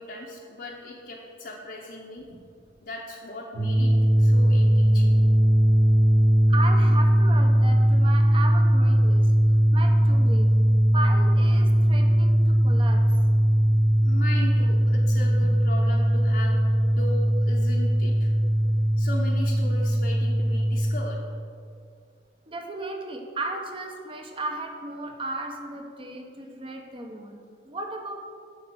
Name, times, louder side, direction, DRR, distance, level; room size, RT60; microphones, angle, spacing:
voice 1, 0.0-2.2 2.8-5.1 14.0-16.6 16.9-18.3 19.0-21.2, left 1 dB, 60° left, -3 dB, 0.8 m, -38 dB
sound 1, 3.5-20.9, equal, 80° right, 1.8 m, -20 dB
voice 2, 6.5-9.3 9.7-10.5 10.9-13.3 13.7-13.8 22.5-28.1, right 2 dB, 30° right, 3 dB, 0.9 m, -35 dB
9.3 x 4.3 x 6.3 m, 2.2 s
head